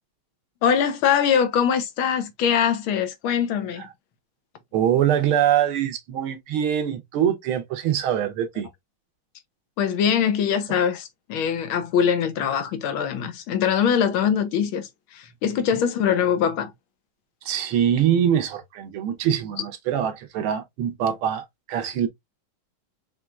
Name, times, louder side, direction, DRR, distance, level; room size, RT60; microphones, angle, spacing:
voice 1, 0.6-3.9 9.8-16.7, left 8 dB, 85° left, 1.6 m, -22 dB
voice 2, 4.7-8.7 17.4-22.1, right 9 dB, 90° right, 1.8 m, -23 dB
5.7 x 3.2 x 2.3 m
omnidirectional pair, 2.3 m